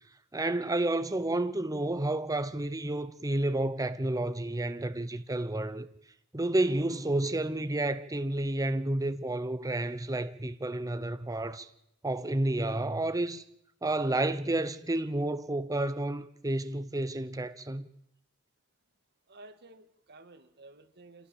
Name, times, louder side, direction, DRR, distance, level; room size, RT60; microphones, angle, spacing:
voice 1, 0.3-5.9 6.3-11.7 12.0-13.4 13.8-17.9, right 1 dB, 15° right, 0.8 m, -30 dB
voice 2, 19.3-21.3, right 2 dB, 50° right, 2.1 m, -53 dB
27.0 x 18.0 x 7.2 m
head